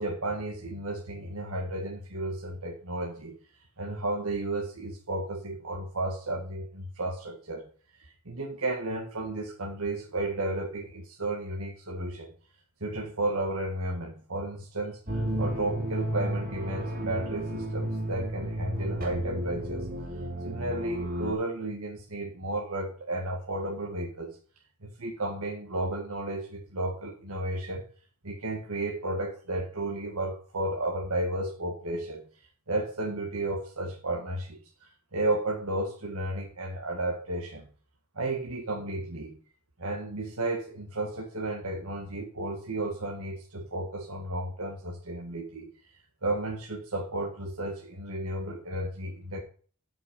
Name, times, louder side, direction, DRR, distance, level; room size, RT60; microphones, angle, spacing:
voice 1, 0.0-3.4 3.8-7.7 8.0-12.3 12.8-19.9 20.4-24.4 24.8-27.8 28.2-32.2 32.7-37.7 38.2-39.4 39.8-45.7 46.2-49.4, right 2 dB, 70° right, 0 dB, 1.8 m, -33 dB
sound 1, 15.1-21.3, right 1 dB, 40° right, 3.0 m, -32 dB
12.5 x 6.1 x 5.3 m, 0.42 s
head